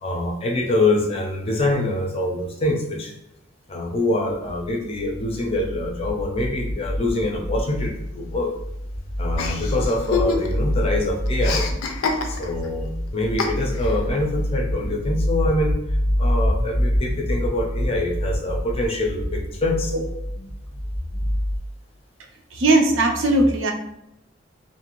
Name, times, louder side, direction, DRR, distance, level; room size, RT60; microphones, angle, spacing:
voice 1, 0.0-3.1 3.7-8.5 9.2-11.7 12.2-15.8 16.2-19.9, left 2 dB, 30° left, 1 dB, 0.4 m, -25 dB
sound 1, 4.4-21.6, equal, 25° right, 0.6 m, -26 dB
Chuckle chortle, 9.4-10.7 11.0-12.7 13.4-14.0, left 5 dB, 90° left, 0.4 m, -27 dB
voice 2, 22.5-23.7, right 2 dB, 70° right, 2 dB, 0.5 m, -18 dB
2.6 x 2.4 x 2.9 m, 0.81 s
head